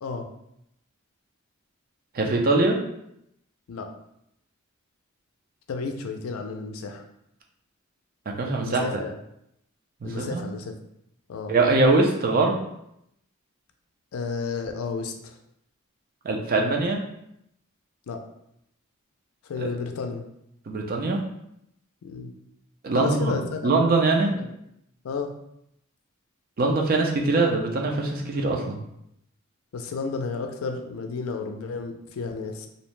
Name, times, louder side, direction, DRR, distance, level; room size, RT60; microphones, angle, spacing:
voice 1, 2.1-2.8 8.4-9.0 10.0-10.4 11.5-12.6 16.2-17.0 19.6-19.7 20.7-21.2 22.8-23.3 23.6-24.3 26.6-28.8, right 3 dB, 45° right, 1 dB, 0.4 m, -22 dB
voice 2, 5.7-7.0 8.6-9.2 10.0-10.7 11.3-11.6 14.1-15.4 18.1-18.2 19.4-20.2 22.0-22.3 22.9-23.8 24.3-24.5 25.0-25.3 29.7-32.7, left 4 dB, 85° left, 4 dB, 0.4 m, -32 dB
2.6 x 2.1 x 3.0 m, 0.78 s
head